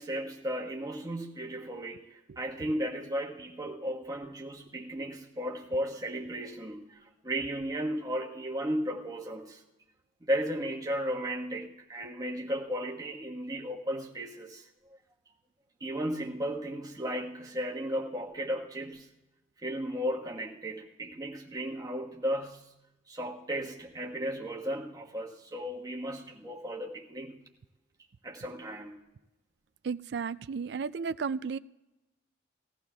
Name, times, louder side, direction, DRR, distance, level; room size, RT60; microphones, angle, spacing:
voice 1, 0.0-9.6 10.2-14.7 15.8-19.1 19.6-22.7 23.1-27.4 28.2-29.0, equal, 20° right, -1 dB, 1.3 m, -35 dB
voice 2, 29.8-31.6, right 5 dB, 60° right, 15 dB, 0.3 m, -33 dB
20.0 x 14.5 x 2.3 m, 1.0 s
head